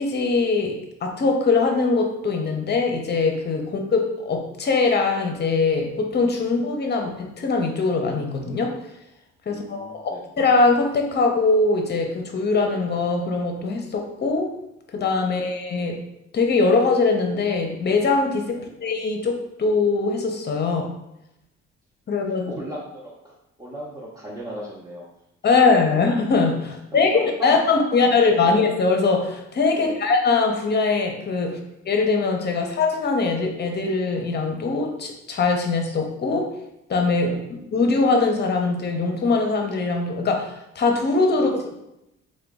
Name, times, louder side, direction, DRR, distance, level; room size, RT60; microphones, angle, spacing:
voice 1, 0.0-8.7 9.5-14.5 14.9-16.0 16.3-20.9 22.1-22.5 25.4-31.6 31.8-36.5 36.9-41.7, left 4 dB, 35° left, 3 dB, 0.6 m, -22 dB
voice 2, 9.5-10.2 18.5-18.6 22.5-25.1 25.4-25.5 26.9-27.0 29.7-30.1 31.4-31.6 37.2-37.4 41.3-41.5, right 1 dB, 10° right, -6 dB, 0.6 m, -38 dB
2.9 x 2.2 x 3.5 m, 0.86 s
cardioid pair, 90°, 30 cm